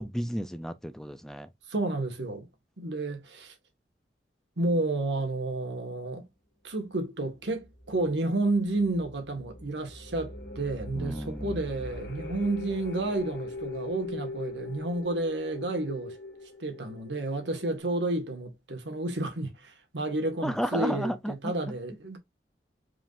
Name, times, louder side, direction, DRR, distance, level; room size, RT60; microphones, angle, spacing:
voice 1, 0.0-1.5 10.9-11.6 20.4-21.7, equal, 5° left, 0.4 m, -33 dB
voice 2, 1.7-2.5 2.8-3.5 4.6-6.3 6.6-16.2 16.6-22.2, right 2 dB, 90° right, 1.6 m, -31 dB
sound 1, 7.5-17.8, left 2 dB, 90° left, 1.9 m, -41 dB
4.9 x 3.7 x 2.5 m
head